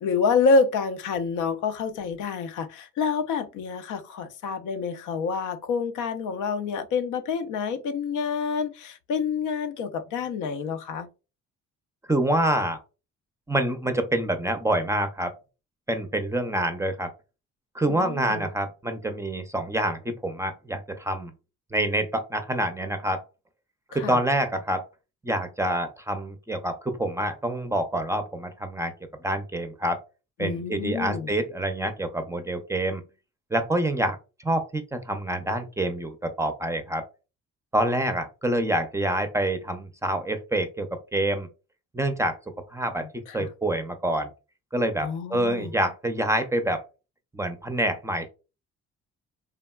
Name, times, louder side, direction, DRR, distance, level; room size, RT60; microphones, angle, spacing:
voice 1, 0.0-11.1 17.9-18.4 23.9-24.2 30.4-31.3 43.3-43.5 45.0-45.7, left 5 dB, 80° left, 0.5 m, -27 dB
voice 2, 12.1-12.8 13.5-15.3 15.9-17.1 17.7-21.3 21.7-23.2 23.9-24.8 25.2-28.9 29.2-30.0 30.4-33.0 33.5-37.1 37.7-41.5 41.9-42.4 42.7-43.1 43.3-44.3 44.7-46.8 47.3-48.3, right 1 dB, 10° right, 0.4 m, -27 dB
3.4 x 2.1 x 2.2 m
cardioid pair, 90°, 30 cm